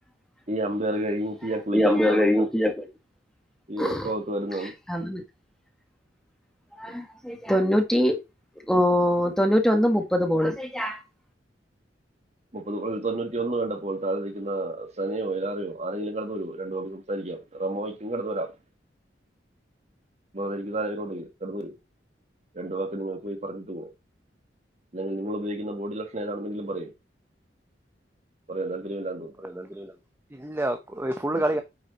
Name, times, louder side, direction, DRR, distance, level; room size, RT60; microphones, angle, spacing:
voice 1, 0.5-2.4 3.7-4.7 6.9-7.0 12.5-18.5 20.3-21.7 22.5-23.9 24.9-26.9 28.5-29.3 31.3-31.4, right 1 dB, 40° right, 1.6 m, -31 dB
voice 2, 1.7-2.9 3.8-4.1 4.9-5.2 6.8-8.2 8.7-11.0, equal, 5° left, 1.3 m, -23 dB
voice 3, 29.4-30.0 30.3-31.6, right 1 dB, 15° right, 0.7 m, -29 dB
9.0 x 4.8 x 4.0 m
head